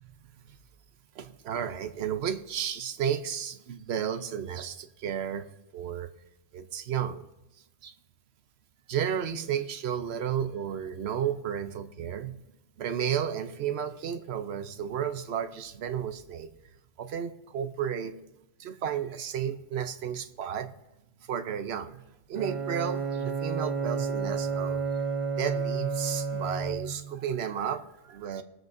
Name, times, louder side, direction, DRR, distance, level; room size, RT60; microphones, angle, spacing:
voice 1, 1.2-5.5 5.7-6.1 6.5-7.2 7.8-7.9 8.9-12.4 12.8-16.5 17.0-18.1 18.6-20.7 21.3-22.0 22.3-24.8 25.3-28.4, right 8 dB, 65° right, 9 dB, 1.0 m, -32 dB
Bowed string instrument, 22.3-27.2, right 5 dB, 40° right, 0.5 m, -31 dB
21.0 x 7.8 x 2.6 m, 0.93 s
omnidirectional pair, 1.2 m